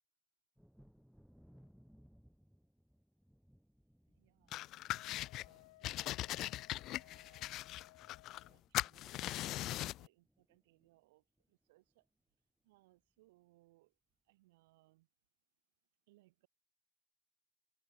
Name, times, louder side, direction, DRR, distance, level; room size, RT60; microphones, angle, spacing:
Thunder, 0.6-10.0 10.2-11.0 11.4-11.5 11.9-12.1, equal, ahead, 4.5 m, -68 dB
voice 1, 4.1-7.6 7.9-12.1 12.6-14.0 14.3-15.1 16.1-16.5, right 20 dB, 85° right, 2.4 m, -72 dB
sound 1, 4.5-5.5 5.8-8.5 8.7-10.1, left 15 dB, 45° left, 0.5 m, -40 dB
Wind instrument woodwind instrument, 4.9-8.6, left 19 dB, 90° left, 6.5 m, -62 dB
open air
supercardioid pair, 140°, 0 cm